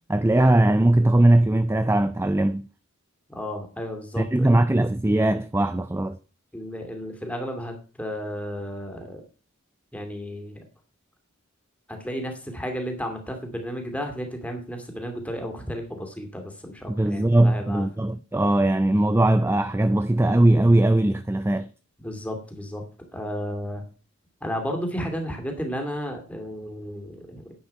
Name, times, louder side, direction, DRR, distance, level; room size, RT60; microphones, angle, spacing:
voice 1, 0.1-2.7 4.2-6.2 16.9-21.7, right 1 dB, 10° right, 0.4 m, -20 dB
voice 2, 3.3-4.6 6.5-9.2 9.9-10.6 11.9-17.9 22.0-22.8 23.1-23.8 24.4-27.5, equal, 5° left, 2.3 m, -33 dB
10.5 x 8.3 x 5.4 m
head